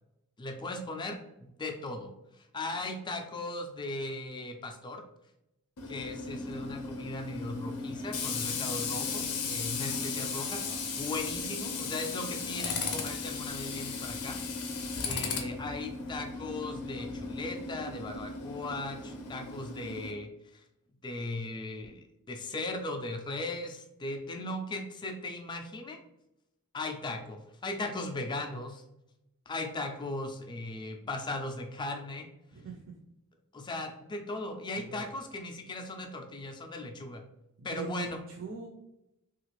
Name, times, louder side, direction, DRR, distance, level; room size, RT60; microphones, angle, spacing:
voice 1, 0.4-5.0 5.9-10.6 11.0-14.4 15.0-20.6 21.0-26.0 26.7-28.8 29.5-32.3 33.5-37.2 37.6-38.2, left 2 dB, 20° left, 4 dB, 0.4 m, -38 dB
Tools, 5.8-20.1, left 4 dB, 85° left, 0.6 m, -36 dB
voice 2, 32.5-32.9 34.7-35.1 37.6-38.7, right 4 dB, 60° right, 2 dB, 0.5 m, -42 dB
3.2 x 2.4 x 3.1 m, 0.87 s
head